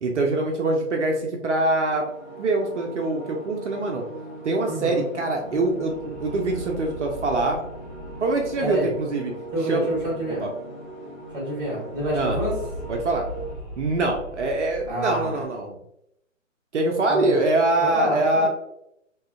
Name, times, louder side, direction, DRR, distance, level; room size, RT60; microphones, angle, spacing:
voice 1, 0.0-2.0 2.4-4.0 4.4-7.6 8.2-9.3 9.7-9.9 10.4-10.5 12.1-12.4 12.9-13.2 13.8-15.8 16.7-18.5, right 2 dB, 60° right, 1 dB, 0.5 m, -24 dB
sound 1, 1.7-13.6, right 1 dB, 85° left, 1.1 m, -40 dB
voice 2, 4.6-5.1 8.6-9.0 9.5-10.5 11.3-12.6 14.9-15.4 17.1-17.3 17.8-18.5, right 1 dB, 10° right, -4 dB, 0.8 m, -28 dB
Underwater Creature growl, 5.4-10.5 10.8-10.9 11.2-15.5, equal, 10° left, 0.5 m, -39 dB
2.7 x 2.2 x 2.4 m, 0.79 s
figure-of-eight pair, 135°, 39 cm